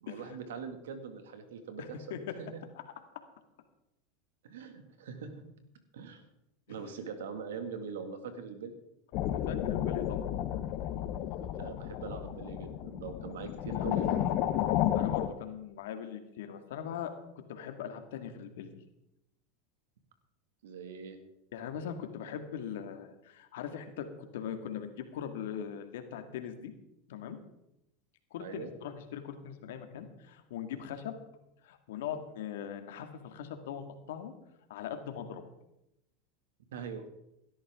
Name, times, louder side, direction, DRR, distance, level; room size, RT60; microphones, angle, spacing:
voice 1, 0.0-2.2 2.5-2.6 4.4-5.3 5.9-6.3 6.7-8.7 11.4-14.3 20.6-21.2 28.4-28.7 36.7-37.1, right 5 dB, 85° right, 7 dB, 2.1 m, -42 dB
voice 2, 1.8-2.3 9.5-10.3 14.9-17.1 17.5-18.7 21.5-26.7 27.1-27.4 28.3-31.2 31.6-34.3 34.7-35.4, left 8 dB, 80° left, 7 dB, 1.9 m, -40 dB
sound 1, 9.1-15.3, left 12 dB, 55° left, 1.0 m, -32 dB
17.0 x 12.5 x 3.7 m, 0.85 s
hypercardioid pair, 105°, 0 cm